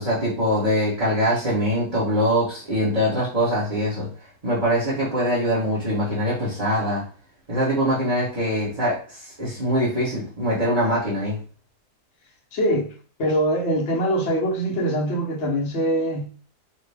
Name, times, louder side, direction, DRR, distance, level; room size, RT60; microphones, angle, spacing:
voice 1, 0.0-4.1 4.4-7.0 7.5-11.4, equal, 25° right, 1.5 m, -23 dB
voice 2, 12.5-12.9 13.2-16.4, equal, 45° left, 1.1 m, -23 dB
5.1 x 2.6 x 3.5 m
omnidirectional pair, 1.8 m